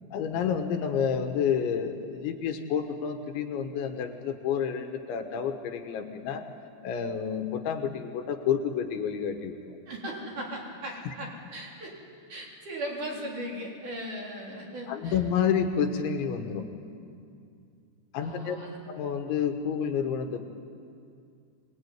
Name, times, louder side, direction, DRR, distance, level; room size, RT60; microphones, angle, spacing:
voice 1, 0.1-6.5 6.8-9.8 11.1-11.2 14.9-16.7 18.1-18.6 18.9-20.4, left 7 dB, 80° left, 6 dB, 3.7 m, -29 dB
voice 2, 9.9-11.9 12.3-15.2 18.2-18.8, right 1 dB, 45° right, -2 dB, 4.9 m, -38 dB
25.0 x 20.0 x 9.4 m, 2.4 s
omnidirectional pair, 5.3 m